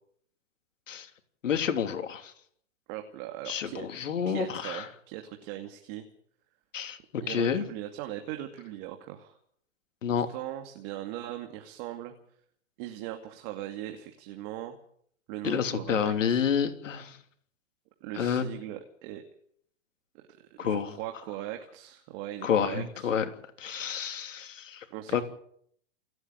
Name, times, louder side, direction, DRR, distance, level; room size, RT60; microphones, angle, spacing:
voice 1, 1.4-2.3 3.4-4.8 6.7-7.6 10.0-10.3 15.4-17.2 18.1-18.5 20.6-20.9 22.4-23.3 23.6-24.8 25.1-25.2, left 7 dB, 85° left, 7 dB, 3.2 m, -29 dB
voice 2, 2.9-3.9 4.3-6.1 7.2-9.4 10.3-12.1 12.8-14.8 15.3-16.4 18.0-19.2 20.1-20.3 20.6-23.1 24.9-25.2, right 13 dB, 45° right, 5 dB, 2.5 m, -39 dB
28.5 x 9.7 x 9.3 m, 0.65 s
hypercardioid pair, 130°, 37 cm